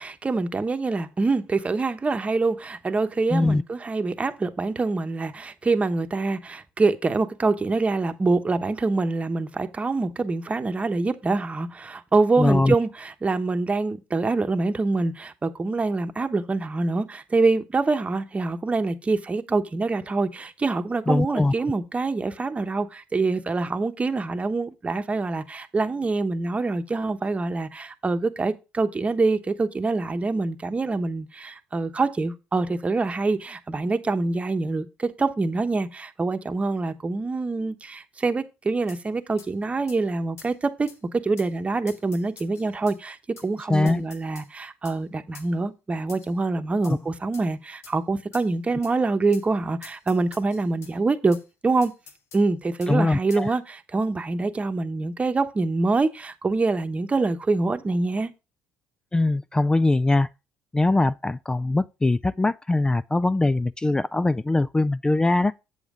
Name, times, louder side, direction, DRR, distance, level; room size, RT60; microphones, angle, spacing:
voice 1, 0.0-43.2 43.4-51.4 51.6-51.9 52.3-58.3, right 3 dB, 25° right, 1.0 m, -25 dB
voice 2, 3.3-3.6 12.4-12.7 21.1-21.5 43.7-44.0 46.8-47.0 52.9-53.5 59.1-60.3 60.7-65.5, left 2 dB, 15° left, 0.3 m, -22 dB
sound 1, 38.9-39.0 39.4-39.5 39.9-40.0 40.4-40.5 40.9-41.0 41.4-41.5 41.9-43.0 43.4-43.5 43.9-44.5 44.8-45.0 45.3-45.5 46.1-46.4 46.8-47.0 47.3-47.5 47.8-48.0 48.3-48.5 48.8-48.9 49.3-49.5 49.8-50.9 51.3-51.4 51.8-52.4 52.8-52.9 53.3-53.5, left 6 dB, 60° left, 1.3 m, -47 dB
8.0 x 7.1 x 3.7 m
supercardioid pair, 70°, 5 cm